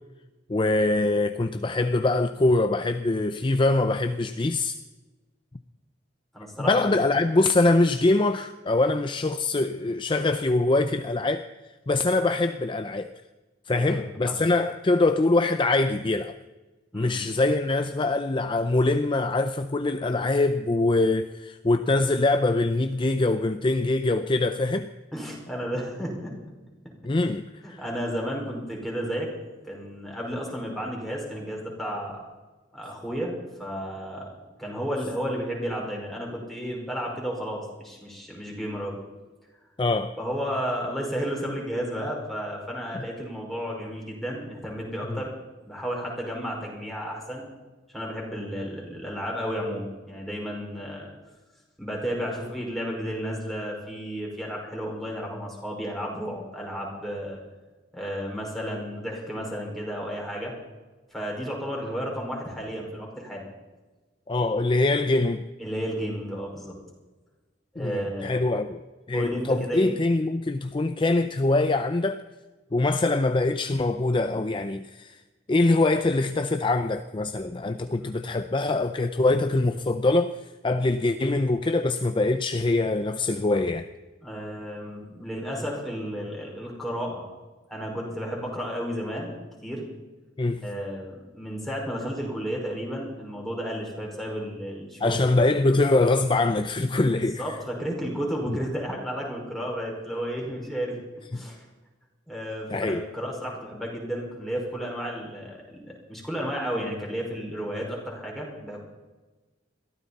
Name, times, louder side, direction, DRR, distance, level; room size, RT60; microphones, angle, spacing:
voice 1, 0.5-4.8 6.6-11.5 11.9-13.1 13.7-16.4 16.9-24.9 27.0-27.8 39.8-40.1 45.1-45.2 64.3-65.5 67.8-68.8 69.1-72.2 72.7-75.2 75.5-83.9 90.4-90.6 95.0-97.4 98.5-98.6 102.7-103.0, left 2 dB, 30° left, 0.5 m, -23 dB
voice 2, 6.3-6.9 13.7-14.4 16.9-17.2 25.1-26.3 27.6-29.3 29.6-32.2 32.7-34.3 34.6-39.0 40.2-45.3 45.6-47.5 47.9-51.1 51.8-57.4 57.9-60.5 61.1-63.5 65.6-66.8 67.7-68.6 69.1-69.9 78.0-78.1 84.2-87.2 87.7-89.3 89.6-89.8 90.6-95.5 97.1-101.0 101.3-101.6 102.3-108.8, equal, ahead, 5.2 m, -32 dB
22.0 x 15.0 x 4.2 m
head